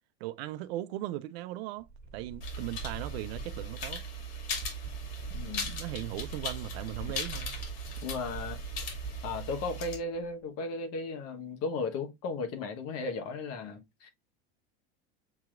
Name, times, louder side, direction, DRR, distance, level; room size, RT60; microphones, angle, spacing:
voice 1, 0.2-1.9 2.1-4.0 5.7-7.6, right 15 dB, 70° right, 0.6 m, -38 dB
sound 1, 1.8-10.3, right 3 dB, 30° right, 1.8 m, -44 dB
sound 2, 2.4-10.0, equal, 80° left, 2.4 m, -38 dB
voice 2, 5.3-5.7 7.0-7.1 8.0-8.6 9.2-14.1, left 3 dB, 50° left, 1.3 m, -35 dB
7.1 x 2.8 x 2.5 m
supercardioid pair, 120°, 32 cm